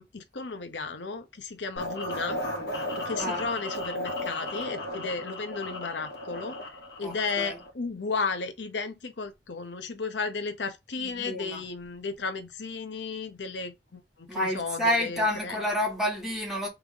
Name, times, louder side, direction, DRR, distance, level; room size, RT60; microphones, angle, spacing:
voice 1, 0.0-2.4 3.0-6.5 7.0-15.6, left 4 dB, 90° left, 0.8 m, -34 dB
sound 1, 1.8-7.7, left 1 dB, 65° left, 1.6 m, -35 dB
voice 2, 7.0-7.6 11.0-11.6 14.3-16.7, left 1 dB, ahead, 2.0 m, -29 dB
3.5 x 3.4 x 3.6 m
head